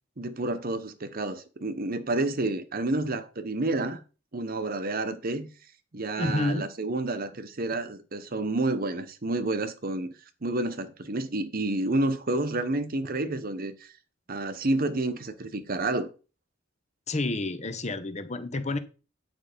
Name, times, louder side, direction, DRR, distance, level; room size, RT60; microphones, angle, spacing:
voice 1, 0.2-4.0 4.3-5.5 5.9-10.1 10.4-13.9 14.3-16.1, right 2 dB, 50° right, 1.0 m, -29 dB
voice 2, 6.2-6.7 17.1-18.8, left 2 dB, 35° left, 1.0 m, -29 dB
9.2 x 5.5 x 5.1 m
head